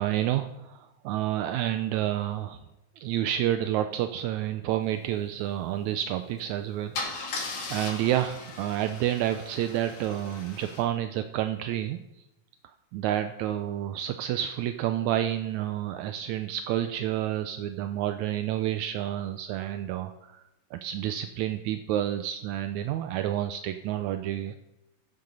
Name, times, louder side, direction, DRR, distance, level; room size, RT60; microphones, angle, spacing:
voice 1, 0.0-2.6 3.0-12.0 12.9-20.4 20.7-24.6, right 12 dB, 80° right, 8 dB, 1.9 m, -29 dB
Car / Engine starting / Idling, 6.2-6.4 6.9-10.8, left 3 dB, 70° left, 3.7 m, -38 dB
14.0 x 7.7 x 5.3 m, 0.93 s
omnidirectional pair, 3.5 m